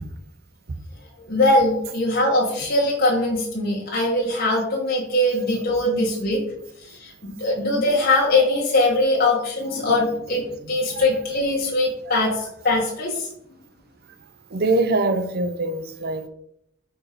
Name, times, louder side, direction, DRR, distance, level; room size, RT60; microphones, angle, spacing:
voice 1, 1.3-6.4 7.0-13.3, left 2 dB, 50° left, 1.3 m, -21 dB
voice 2, 14.5-16.3, right 2 dB, 50° right, 0.6 m, -23 dB
4.4 x 4.3 x 4.9 m
head